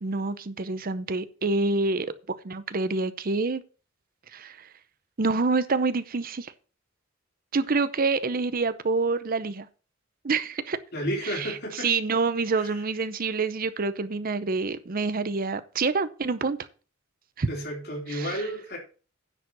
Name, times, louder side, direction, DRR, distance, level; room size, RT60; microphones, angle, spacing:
voice 1, 0.0-2.1 2.4-3.6 4.3-4.7 5.2-6.5 7.5-9.7 10.2-10.8 11.2-16.6 17.4-17.5 18.1-18.5, right 3 dB, 45° right, 14 dB, 0.6 m, -27 dB
voice 2, 10.9-11.9 17.5-18.8, equal, 55° left, 0 dB, 3.8 m, -31 dB
9.8 x 5.0 x 7.3 m, 0.37 s
head